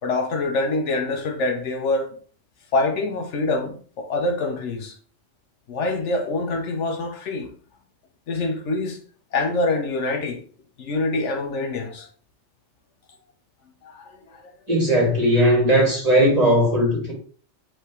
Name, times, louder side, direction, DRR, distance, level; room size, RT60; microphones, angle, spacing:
voice 1, 0.0-2.2 2.7-5.0 5.7-7.5 8.3-9.0 9.3-10.4 10.8-12.1 13.8-14.5, left 2 dB, 80° left, 1.1 m, -25 dB
voice 2, 14.7-17.1, equal, 35° right, 1.7 m, -18 dB
5.1 x 3.0 x 3.0 m
omnidirectional pair, 1.2 m